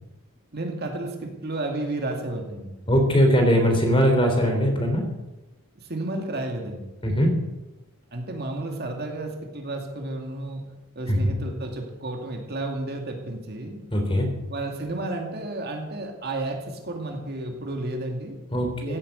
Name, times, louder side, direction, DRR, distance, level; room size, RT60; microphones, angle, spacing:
voice 1, 0.5-2.8 5.8-6.9 8.1-10.6 11.0-13.8 14.5-18.4 18.8-19.0, right 2 dB, 45° right, 3 dB, 2.4 m, -32 dB
voice 2, 2.9-5.0 7.0-7.3 11.1-11.3 13.9-14.3 18.5-18.9, equal, 25° left, 4 dB, 3.2 m, -20 dB
16.0 x 9.1 x 8.0 m, 1.0 s
head